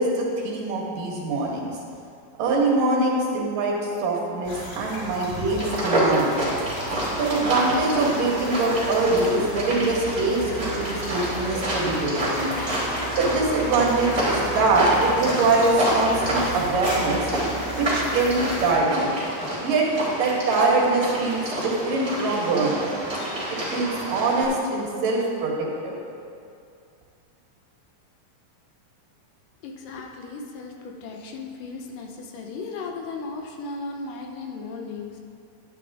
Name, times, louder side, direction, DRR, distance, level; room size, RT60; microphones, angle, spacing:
voice 1, 0.0-1.7 2.4-6.4 7.2-12.5 13.2-17.3 17.7-19.1 19.6-19.9 20.2-22.9 23.5-26.0, right 3 dB, 75° right, -3 dB, 3.3 m, -23 dB
sound 1, 4.4-18.7, left 1 dB, 55° left, 2.4 m, -35 dB
sound 2, 5.6-24.4, right 1 dB, 25° right, 3.0 m, -28 dB
voice 2, 29.6-35.2, left 3 dB, 75° left, 2 dB, 2.4 m, -36 dB
11.5 x 10.5 x 3.6 m, 2.4 s
omnidirectional pair, 3.9 m